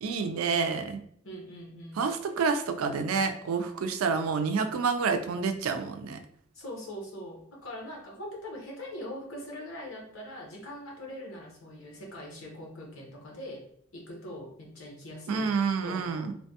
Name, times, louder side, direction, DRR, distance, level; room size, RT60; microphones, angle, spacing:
voice 1, 0.0-1.0 2.0-6.2 15.3-16.3, right 5 dB, 85° right, 7 dB, 0.4 m, -28 dB
voice 2, 1.2-2.1 6.5-13.7 13.9-15.5 15.8-16.3, left 1 dB, 75° left, -1 dB, 0.9 m, -42 dB
3.1 x 2.2 x 2.7 m, 0.67 s
head